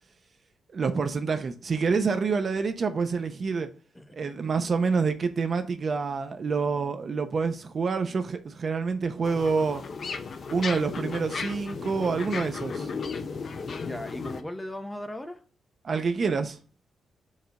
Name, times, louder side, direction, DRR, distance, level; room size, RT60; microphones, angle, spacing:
voice 1, 0.7-3.7 4.1-9.8 10.5-12.9 15.8-16.6, right 5 dB, 45° right, 0.7 m, -27 dB
voice 2, 3.9-4.3 13.6-15.4, left 1 dB, 10° left, 0.6 m, -38 dB
sound 1, 9.2-14.4, left 5 dB, 50° left, 0.6 m, -35 dB
4.9 x 4.0 x 5.5 m
cardioid pair, 130°, 0 cm